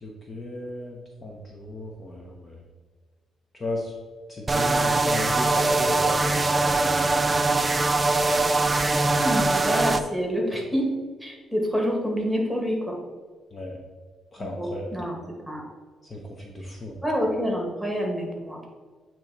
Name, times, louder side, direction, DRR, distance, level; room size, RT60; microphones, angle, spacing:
voice 1, 0.0-2.6 3.5-3.9 4.3-7.3 13.5-13.8 14.3-14.9 16.1-17.0, left 1 dB, 30° left, -1 dB, 0.9 m, -35 dB
sound 1, 4.5-10.0, right 3 dB, 25° right, 0.4 m, -22 dB
voice 2, 9.2-10.9 11.2-13.0 14.4-15.2 15.5-15.6 17.0-18.7, equal, ahead, 0 dB, 1.6 m, -27 dB
8.5 x 3.0 x 4.0 m, 1.5 s
cardioid pair, 90°, 0 cm